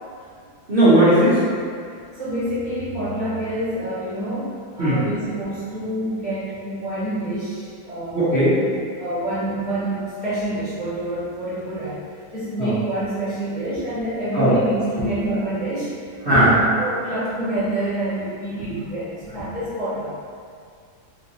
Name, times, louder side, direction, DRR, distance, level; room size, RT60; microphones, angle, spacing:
voice 1, 0.7-1.4 4.8-5.0 8.1-8.6 12.6-12.7 14.3-14.5 15.0-15.1 16.2-16.5 17.4-17.5 18.7-18.8, right 1 dB, 45° right, -14 dB, 0.8 m, -17 dB
voice 2, 2.1-8.3 9.0-12.0 12.3-20.1, right 1 dB, 15° left, -15 dB, 1.1 m, -27 dB
3.4 x 3.1 x 2.7 m, 2.2 s
omnidirectional pair, 2.1 m